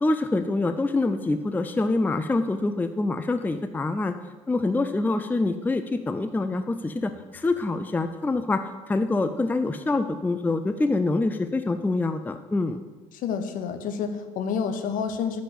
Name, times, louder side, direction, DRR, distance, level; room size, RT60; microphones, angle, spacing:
voice 1, 0.0-4.2 4.5-12.8, left 2 dB, 10° left, 9 dB, 0.5 m, -25 dB
voice 2, 13.1-15.4, left 6 dB, 50° left, 9 dB, 1.0 m, -29 dB
9.9 x 5.3 x 7.5 m, 1.3 s
figure-of-eight pair, 60°, 17 cm